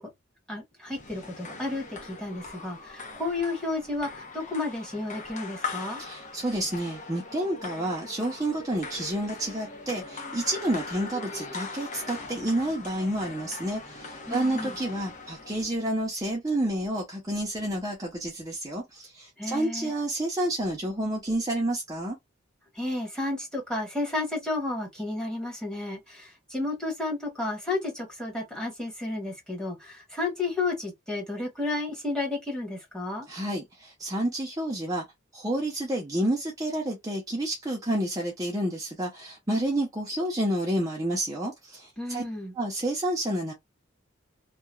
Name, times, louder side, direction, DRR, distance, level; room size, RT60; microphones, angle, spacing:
voice 1, 0.5-6.0 14.3-14.7 19.4-19.9 22.7-33.2 42.0-42.5, left 2 dB, 5° left, 1.3 m, -32 dB
sound 1, 0.9-15.7, left 3 dB, 40° left, 0.8 m, -40 dB
voice 2, 6.0-22.2 33.3-35.0 35.3-42.2 42.5-43.5, right 1 dB, 20° right, 0.7 m, -29 dB
2.9 x 2.3 x 2.3 m
head